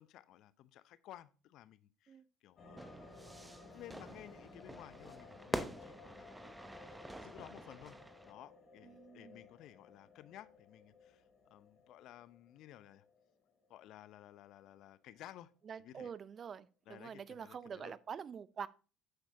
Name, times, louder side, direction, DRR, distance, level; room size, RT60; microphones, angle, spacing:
voice 1, 0.0-2.8 3.6-6.3 7.1-11.2 11.5-13.0 13.7-15.5 15.8-16.1 16.9-17.9, left 13 dB, 60° left, 0.6 m, -55 dB
sound 1, 2.6-14.8 15.1-15.2, left 3 dB, 45° left, 2.6 m, -58 dB
Fire / Fireworks, 2.8-8.3, right 1 dB, 10° right, 1.0 m, -46 dB
voice 2, 8.8-9.4 15.7-18.7, right 7 dB, 40° right, 0.6 m, -46 dB
10.5 x 7.9 x 2.8 m
hypercardioid pair, 60°, 0 cm